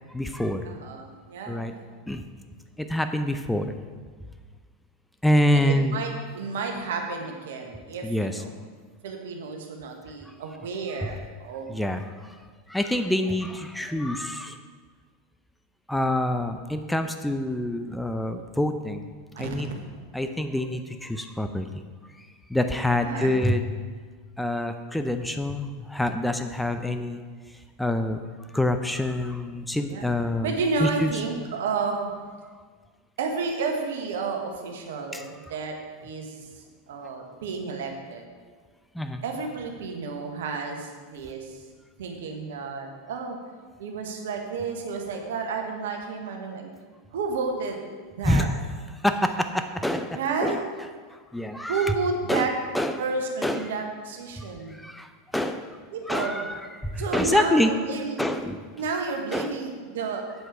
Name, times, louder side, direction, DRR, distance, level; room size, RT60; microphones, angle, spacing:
voice 1, 0.1-0.7 1.5-1.7 2.1-2.2 2.8-3.7 5.2-6.0 8.0-8.4 11.7-12.3 12.7-14.6 15.9-19.1 19.4-19.7 20.1-21.7 22.2-23.6 24.4-27.2 27.8-28.3 28.5-31.1 35.1-35.2 38.9-39.2 48.2-48.5 49.0-50.6 51.1-51.9 52.3-52.5 52.7-53.0 53.4-53.7 54.4-55.8 56.1-57.7 58.2-58.6 59.3-59.5, left 1 dB, 5° left, 7 dB, 0.5 m, -26 dB
voice 2, 0.6-1.9 5.5-8.5 9.0-11.7 19.3-19.6 22.9-23.4 29.9-30.1 30.4-32.1 33.2-38.2 39.2-41.6 42.0-43.4 43.8-46.7 47.1-47.8 48.2-48.5 50.1-50.6 51.7-52.5 53.0-54.7 55.9-56.5 57.0-58.2 58.8-60.2, right 4 dB, 65° right, 3 dB, 1.3 m, -31 dB
8.1 x 7.8 x 4.8 m, 1.5 s
figure-of-eight pair, 85°, 0 cm